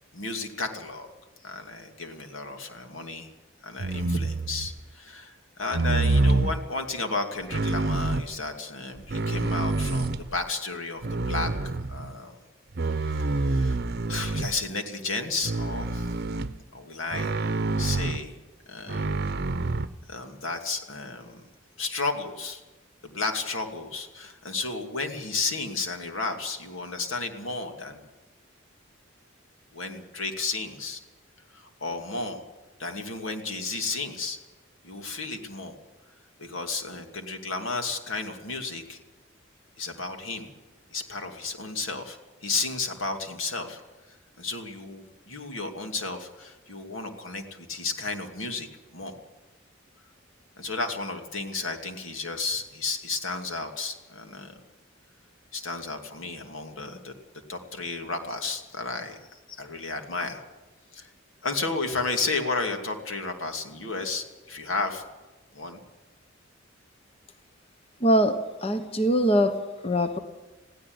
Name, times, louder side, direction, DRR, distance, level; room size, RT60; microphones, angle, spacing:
voice 1, 0.1-1.1 1.4-3.3 3.6-11.5 11.9-12.4 13.0-13.8 14.1-16.1 16.7-17.3 17.8-18.4 18.7-19.1 20.1-21.4 21.8-22.6 23.0-28.0 29.7-31.0 31.5-32.4 32.8-34.4 34.8-35.8 36.4-39.0 39.8-40.5 40.9-43.8 44.4-49.1 50.6-54.5 55.5-57.1 57.5-60.4 60.9-61.1 61.4-65.0 65.5-65.8, left 3 dB, 85° left, 5 dB, 2.7 m, -33 dB
sound 1, 3.8-4.8 5.7-6.6 7.5-8.3 9.0-10.4 11.0-12.1 12.7-14.6 15.4-16.6 17.1-18.2 18.9-19.9, right 2 dB, 55° right, 0.8 m, -27 dB
voice 2, 68.0-70.2, equal, 30° left, 8 dB, 1.1 m, -23 dB
21.0 x 16.0 x 8.0 m, 1.2 s
head